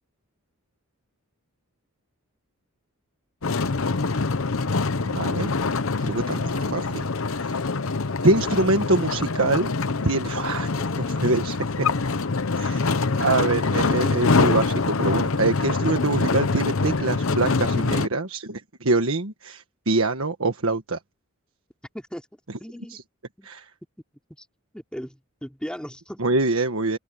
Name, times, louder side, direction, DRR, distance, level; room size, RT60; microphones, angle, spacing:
sound 1, 3.4-18.1, left 3 dB, 70° left, 0.9 m, -24 dB
voice 1, 5.0-5.5 6.0-7.1 7.3-7.6 8.2-9.7 10.0-11.9 12.6-21.0 22.9-23.0 23.4-23.7 26.2-27.0, right 2 dB, 70° right, 1.5 m, -25 dB
voice 2, 21.9-23.0 23.4-23.5 24.4-24.5 24.7-26.3, equal, 5° left, 3.8 m, -37 dB
head